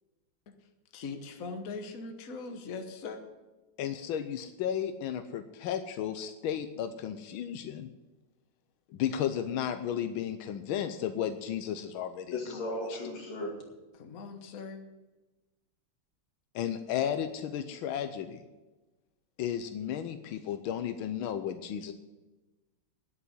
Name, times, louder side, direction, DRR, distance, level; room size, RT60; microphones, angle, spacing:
voice 1, 0.9-3.2 13.9-14.8, left 4 dB, 50° left, 1.4 m, -40 dB
voice 2, 3.8-7.9 8.9-12.6 12.9-13.0 16.5-18.4 19.4-21.9, left 9 dB, 90° left, 1.5 m, -34 dB
voice 3, 12.3-13.6, left 2 dB, 65° left, 3.1 m, -36 dB
10.0 x 8.3 x 9.4 m
omnidirectional pair, 2.2 m